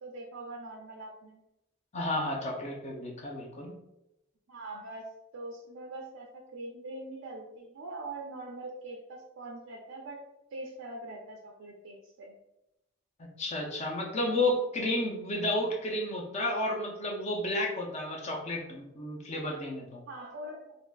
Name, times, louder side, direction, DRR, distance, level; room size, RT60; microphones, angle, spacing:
voice 1, 0.0-1.4 4.5-5.1 5.3-10.2 10.5-12.4 20.1-20.8, right 2 dB, 80° right, 0 dB, 0.4 m, -43 dB
voice 2, 1.9-3.8 13.2-20.0, left 1 dB, 35° left, 0 dB, 0.5 m, -32 dB
3.4 x 2.5 x 2.2 m, 0.89 s
head